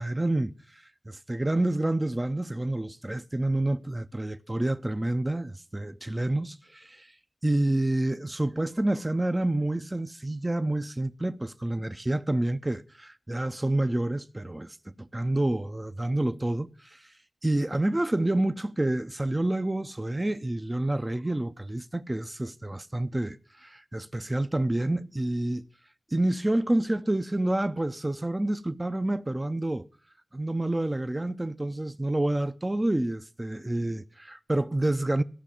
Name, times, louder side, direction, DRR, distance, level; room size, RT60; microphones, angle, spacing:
voice 1, 0.0-7.1 7.4-17.1 17.4-25.7 26.1-29.9 30.3-35.2, right 1 dB, 20° right, 0.6 m, -28 dB
14.5 x 5.6 x 8.8 m
cardioid pair, 55°, 0 cm